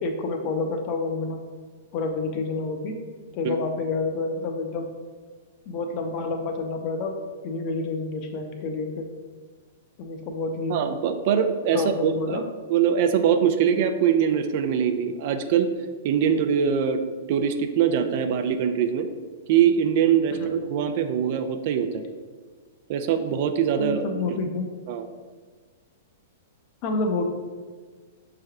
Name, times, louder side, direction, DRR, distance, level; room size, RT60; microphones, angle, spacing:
voice 1, 0.0-1.4 1.9-3.0 3.3-4.9 5.7-7.2 7.4-9.1 10.0-10.8 11.7-12.4 20.3-20.5 23.8-24.7 26.8-27.2, left 3 dB, 45° left, 4 dB, 0.6 m, -28 dB
voice 2, 10.7-15.7 16.0-17.0 17.3-19.1 19.5-22.0 22.9-24.1 24.9-25.0, right 8 dB, 50° right, 8 dB, 0.4 m, -23 dB
6.2 x 3.3 x 2.3 m, 1.5 s
hypercardioid pair, 115°, 0 cm